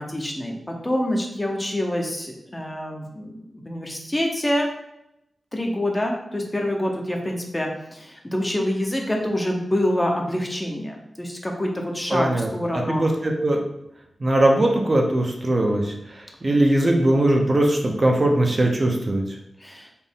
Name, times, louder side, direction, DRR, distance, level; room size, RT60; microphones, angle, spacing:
voice 1, 0.0-4.7 5.5-13.0 19.6-19.9, left 1 dB, 20° left, 1 dB, 0.7 m, -26 dB
voice 2, 12.1-12.5 12.7-13.6 14.2-15.9 16.4-19.2, right 1 dB, 40° right, 1 dB, 0.6 m, -20 dB
4.1 x 2.5 x 3.6 m, 0.84 s
wide cardioid pair, 75°, 0 cm